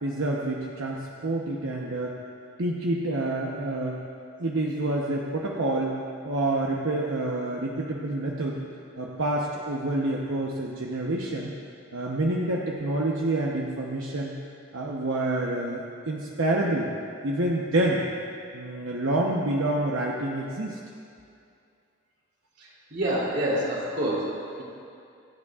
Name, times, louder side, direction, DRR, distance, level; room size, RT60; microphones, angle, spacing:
voice 1, 0.0-2.2 2.6-4.0 4.4-6.0 6.2-8.6 9.0-11.5 11.9-14.4 14.7-16.9 17.2-18.0 18.5-20.8, right 2 dB, 80° right, -2 dB, 0.9 m, -28 dB
voice 2, 22.6-24.6, right 1 dB, 55° right, -5 dB, 3.1 m, -28 dB
25.5 x 9.8 x 2.4 m, 2.5 s
head